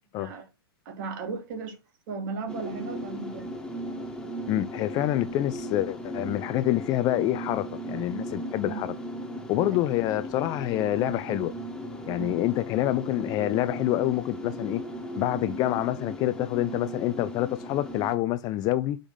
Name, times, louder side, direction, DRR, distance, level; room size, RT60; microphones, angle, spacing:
voice 1, 0.9-1.8 2.1-3.5 8.6-8.8 12.2-12.4, right 5 dB, 50° right, 1.9 m, -35 dB
sound 1, 2.5-18.1, equal, 5° left, 1.4 m, -37 dB
voice 2, 4.5-8.9 9.5-11.5 12.1-14.8 15.2-19.0, left 14 dB, 30° left, 0.3 m, -27 dB
5.0 x 3.5 x 5.5 m
figure-of-eight pair, 105°, 13 cm